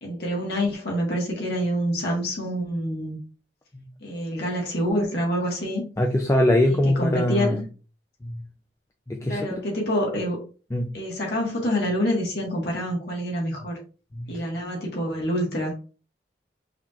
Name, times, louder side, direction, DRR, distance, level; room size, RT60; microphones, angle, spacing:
voice 1, 0.0-3.2 4.0-5.9 6.6-7.6 9.3-10.4 10.9-13.8 14.3-15.7, equal, 65° left, -2 dB, 1.5 m, -27 dB
voice 2, 6.0-7.6 8.2-8.4 9.1-9.6 10.7-10.9 14.1-14.5, left 1 dB, 15° left, 2 dB, 0.4 m, -22 dB
5.7 x 3.0 x 2.4 m, 0.36 s
head